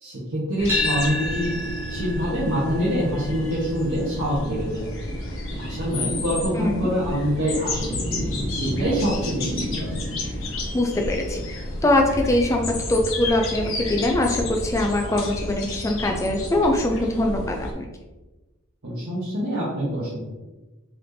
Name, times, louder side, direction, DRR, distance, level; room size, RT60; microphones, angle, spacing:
voice 1, 0.0-1.5 1.9-4.9 5.6-7.9 8.6-10.1 18.8-20.3, equal, 65° right, -9 dB, 1.1 m, -25 dB
sound 1, 0.6-17.7, left 1 dB, 60° left, 0.8 m, -31 dB
sound 2, 0.7-8.9, left 1 dB, 10° right, 0.7 m, -33 dB
voice 2, 6.5-6.9 10.7-11.4 11.8-17.9, left 1 dB, 15° left, 2 dB, 0.3 m, -22 dB
4.2 x 3.3 x 2.7 m, 1.1 s
head